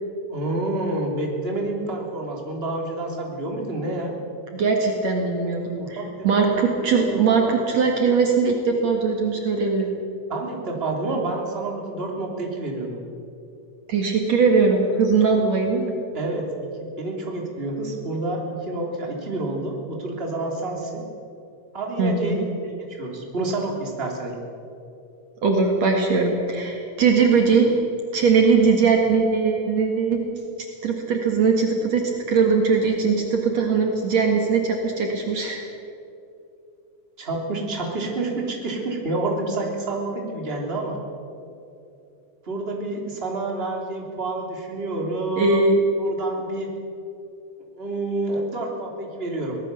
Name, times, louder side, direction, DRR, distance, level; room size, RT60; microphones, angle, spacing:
voice 1, 0.3-4.1 5.8-6.4 6.9-7.5 10.3-13.0 16.1-16.5 16.8-21.0 21.7-24.4 37.2-41.0 42.4-45.7 46.0-46.7 47.8-49.6, right 2 dB, 20° right, 0 dB, 3.3 m, -28 dB
voice 2, 4.5-9.9 13.9-15.9 22.0-22.4 25.4-27.7 28.1-30.2 30.8-35.6 45.4-45.8, right 4 dB, 60° right, 2 dB, 2.9 m, -20 dB
24.5 x 18.5 x 6.9 m, 2.7 s
omnidirectional pair, 3.6 m